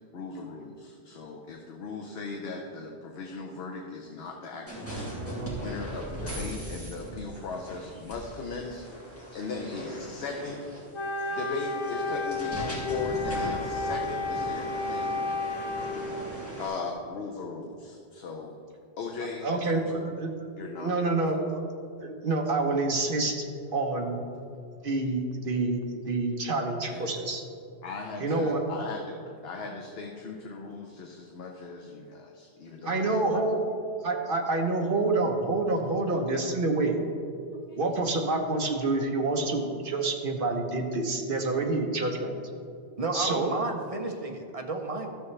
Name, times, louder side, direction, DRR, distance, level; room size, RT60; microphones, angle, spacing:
voice 1, 0.1-10.6 11.3-16.0 16.6-18.6 19.0-20.2 20.6-21.5 26.9-27.2 27.8-29.2 29.4-33.4 37.7-37.8, left 3 dB, 70° left, 2 dB, 0.9 m, -38 dB
sound 1, 4.7-16.7, right 1 dB, 10° left, 2.2 m, -39 dB
Wind instrument woodwind instrument, 10.9-16.1, left 3 dB, 35° left, 0.6 m, -32 dB
voice 2, 19.4-20.3 20.8-21.6 22.0-23.3 23.7-24.2 24.8-27.4 28.2-28.6 32.8-33.6 34.0-37.0 37.8-42.4 43.1-43.5, right 2 dB, 55° right, 3 dB, 1.1 m, -27 dB
voice 3, 43.0-45.1, right 3 dB, 40° right, 3 dB, 0.7 m, -32 dB
13.0 x 7.0 x 3.2 m, 2.4 s
omnidirectional pair, 1.1 m